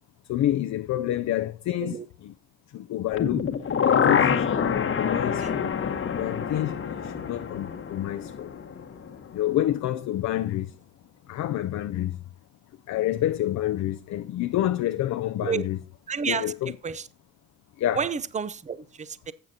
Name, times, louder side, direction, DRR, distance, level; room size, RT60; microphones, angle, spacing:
voice 1, 0.3-2.3 2.7-3.6 3.8-5.7 6.1-8.5 9.3-10.7 11.3-12.2 12.9-15.8 16.2-16.7 17.8-18.0, left 13 dB, 65° left, 0.5 m, -28 dB
sound 1, 3.1-9.2 9.5-9.6, left 7 dB, 45° left, 1.1 m, -26 dB
voice 2, 16.1-16.5 16.8-17.1 17.9-19.3, right 6 dB, 25° right, 0.6 m, -30 dB
13.5 x 7.6 x 2.8 m
cardioid pair, 90°, 30 cm